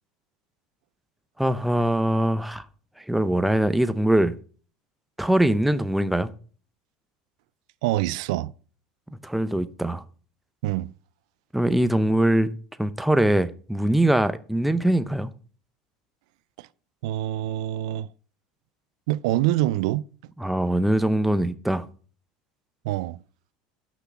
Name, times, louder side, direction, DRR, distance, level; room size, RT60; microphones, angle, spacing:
voice 1, 1.4-2.6 3.0-4.3 5.2-6.3 9.2-10.0 11.5-12.5 12.8-15.3 20.4-21.9, right 1 dB, 5° right, 0.7 m, -22 dB
voice 2, 7.8-8.5 10.6-10.9 16.6-16.7 17.0-18.1 19.1-20.1 22.8-23.2, right 15 dB, 80° right, 0.4 m, -25 dB
6.0 x 5.8 x 7.1 m
supercardioid pair, 125°, 3 cm